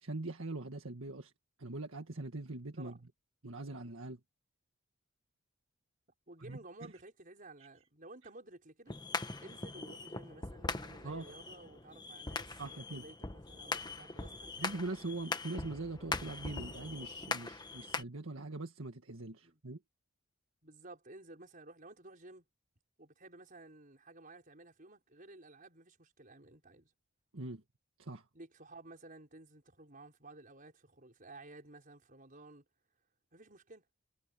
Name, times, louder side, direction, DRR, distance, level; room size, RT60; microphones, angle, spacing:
voice 1, 0.0-1.3 1.6-3.0 3.4-4.2 6.4-6.9 11.0-11.4 12.6-13.1 14.6-19.8 27.3-27.6 28.0-28.2, right 2 dB, 70° right, 1.8 m, -42 dB
voice 2, 6.3-9.0 9.4-14.5 19.4-19.6 20.6-22.4 23.0-26.9 28.3-32.6 33.3-33.8, right 2 dB, 40° right, 5.4 m, -54 dB
sound 1, 8.9-18.0, left 3 dB, 20° left, 1.2 m, -41 dB
head